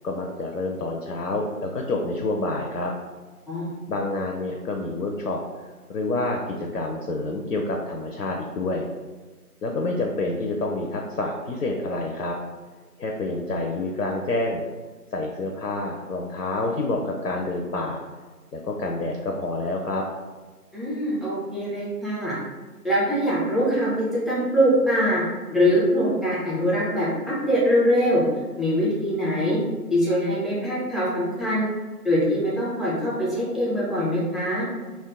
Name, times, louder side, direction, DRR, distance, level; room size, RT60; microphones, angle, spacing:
voice 1, 0.0-2.9 3.9-8.9 9.6-12.4 13.0-14.6 15.1-18.0 18.5-20.1, left 2 dB, 75° left, 1 dB, 0.5 m, -28 dB
voice 2, 20.7-22.4 22.8-25.2 25.5-28.2 28.6-29.6 29.9-31.7 32.0-34.7, equal, ahead, -8 dB, 0.5 m, -23 dB
2.5 x 2.2 x 3.6 m, 1.3 s
figure-of-eight pair, 180°, 47 cm